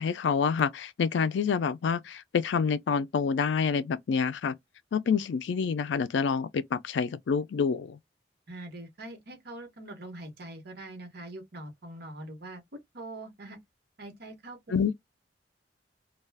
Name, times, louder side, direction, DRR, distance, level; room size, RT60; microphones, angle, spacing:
voice 1, 0.0-4.6 4.9-8.0 14.7-14.9, left 6 dB, 75° left, 0.4 m, -27 dB
voice 2, 8.5-13.6 14.0-14.7, right 1 dB, 60° right, 1.0 m, -43 dB
2.3 x 2.2 x 3.3 m
head